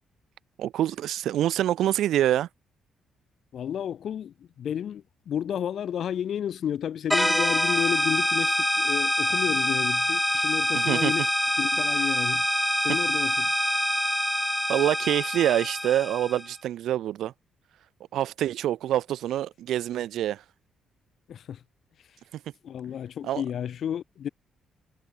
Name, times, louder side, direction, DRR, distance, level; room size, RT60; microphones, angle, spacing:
voice 1, 0.6-2.5 10.7-11.1 14.7-17.3 18.1-20.4 23.2-23.4, right 12 dB, 75° right, 0.9 m, -26 dB
voice 2, 3.5-11.3 11.6-12.4 12.8-13.5 21.3-21.6 22.6-24.3, left 9 dB, 65° left, 3.5 m, -31 dB
sound 1, 7.1-16.5, left 1 dB, 5° left, 1.1 m, -25 dB
cardioid pair, 90°, 0 cm